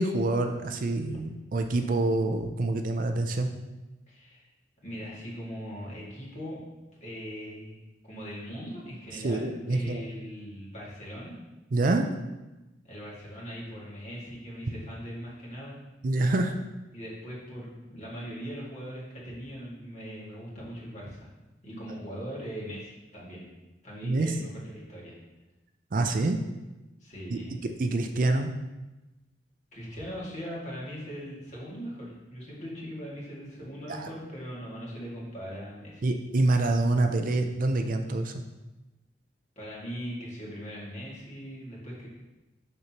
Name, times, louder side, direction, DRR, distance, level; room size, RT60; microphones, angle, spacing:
voice 1, 0.0-3.5 9.2-10.0 11.7-12.1 16.0-16.5 24.0-24.3 25.9-26.4 27.3-28.5 33.9-34.1 36.0-38.3, right 2 dB, 50° right, 6 dB, 0.4 m, -26 dB
voice 2, 4.1-4.5 4.8-6.6 7.0-11.4 12.8-15.8 16.9-21.3 21.6-23.5 23.8-25.2 27.0-27.5 29.7-36.1 39.6-42.1, equal, 40° left, -6 dB, 2.0 m, -40 dB
6.4 x 5.9 x 3.0 m, 1.1 s
head